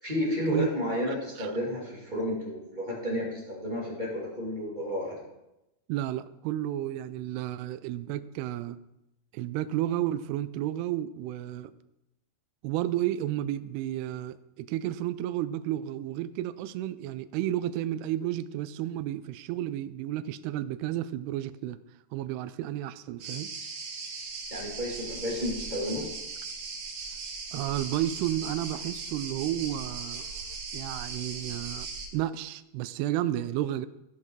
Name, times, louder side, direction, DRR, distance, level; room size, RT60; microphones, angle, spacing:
voice 1, 0.0-5.2 24.5-26.1, left 1 dB, 20° right, -5 dB, 1.3 m, -32 dB
voice 2, 1.1-1.5 5.9-8.8 9.3-11.7 12.6-21.8 22.1-23.5 27.5-30.3 30.7-31.9 32.1-33.9, right 13 dB, 85° right, 14 dB, 2.4 m, -32 dB
sound 1, 23.2-32.1, right 4 dB, 65° right, 2.7 m, -38 dB
15.5 x 5.6 x 4.6 m, 0.93 s
omnidirectional pair, 5.0 m